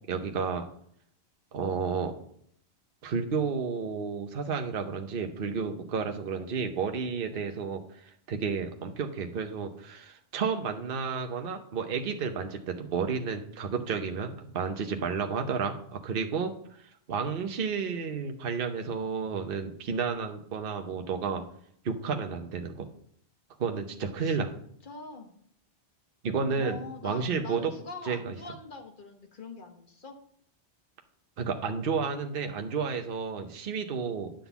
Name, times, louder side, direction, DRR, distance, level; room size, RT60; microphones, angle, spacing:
voice 1, 0.1-0.7 1.5-2.1 3.0-21.4 21.8-22.9 23.6-24.5 26.2-27.7 28.0-28.3 31.4-34.3, right 5 dB, 55° right, 5 dB, 1.0 m, -31 dB
voice 2, 24.0-24.5 24.8-25.3 26.5-30.2, left 3 dB, 50° left, 3 dB, 1.3 m, -43 dB
10.0 x 3.9 x 6.9 m, 0.66 s
omnidirectional pair, 1.1 m